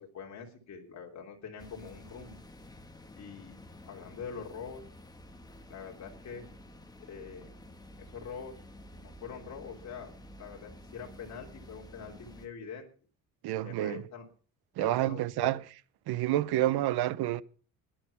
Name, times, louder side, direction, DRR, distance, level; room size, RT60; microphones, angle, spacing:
voice 1, 0.0-2.4 3.2-3.5 3.9-4.8 5.7-6.5 7.1-7.5 8.0-8.6 9.0-10.1 10.4-12.9 13.6-14.3 14.8-15.5, left 6 dB, 45° left, 3.0 m, -44 dB
sound 1, 1.6-12.5, left 1 dB, 10° left, 1.4 m, -51 dB
voice 2, 13.4-14.0 14.8-15.6 16.1-17.4, right 14 dB, 85° right, 0.8 m, -28 dB
15.0 x 10.5 x 5.7 m
cardioid pair, 145°, 37 cm